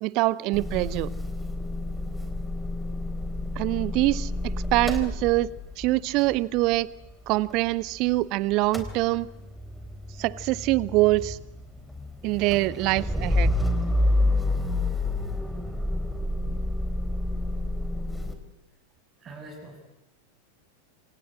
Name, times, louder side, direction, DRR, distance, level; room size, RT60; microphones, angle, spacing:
voice 1, 0.0-1.1 3.6-5.5 5.8-6.9 7.3-9.3 10.2-11.4 12.2-13.5, right 19 dB, 40° right, 21 dB, 0.9 m, -24 dB
Motor vehicle (road) / Engine starting / Idling, 0.5-8.2 8.5-18.3, left 1 dB, ahead, 3.8 m, -29 dB
voice 2, 19.2-19.8, right 3 dB, 25° right, -3 dB, 7.5 m, -43 dB
27.5 x 26.5 x 7.9 m, 0.93 s
figure-of-eight pair, 90°, 0 cm